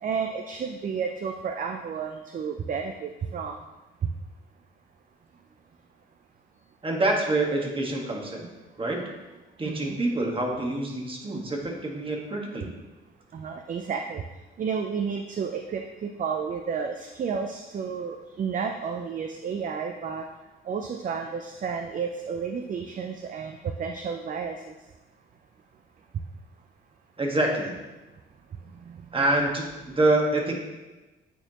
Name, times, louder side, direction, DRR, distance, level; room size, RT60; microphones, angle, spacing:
voice 1, 0.0-3.6 9.6-10.0 13.3-14.2 14.6-20.2 20.7-24.6 28.9-29.0, right 6 dB, 40° right, 4 dB, 0.5 m, -31 dB
voice 2, 6.8-8.5 8.8-9.0 9.6-12.7 27.2-27.8 29.1-30.5, right 2 dB, 25° right, 0 dB, 1.4 m, -26 dB
9.1 x 4.4 x 2.9 m, 1.1 s
cardioid pair, 90°, 20 cm